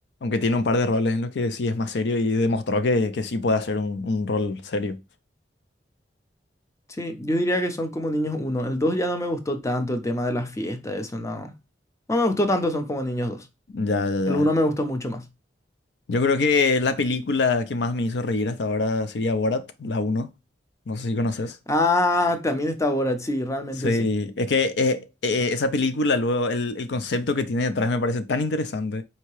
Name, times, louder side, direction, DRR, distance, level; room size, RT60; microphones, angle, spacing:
voice 1, 0.2-5.0 13.7-14.5 16.1-20.3 20.9-21.6 23.8-29.0, left 3 dB, 70° left, 0.5 m, -24 dB
voice 2, 6.9-11.5 12.1-13.5 14.3-15.3 21.7-24.1, left 1 dB, 15° left, 0.6 m, -25 dB
4.5 x 2.8 x 3.0 m
head